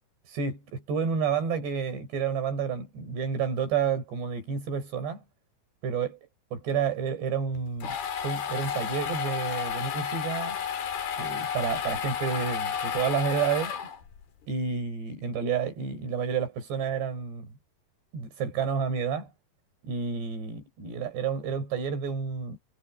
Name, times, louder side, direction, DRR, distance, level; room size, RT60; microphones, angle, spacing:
voice 1, 0.3-5.2 5.8-6.1 6.5-7.9 8.2-10.6 11.2-13.7 14.5-17.5 18.1-19.3 19.8-22.6, right 6 dB, 90° right, 7.8 m, -30 dB
sound 1, 7.5-14.2, left 8 dB, 70° left, 4.7 m, -32 dB
omnidirectional pair, 4.8 m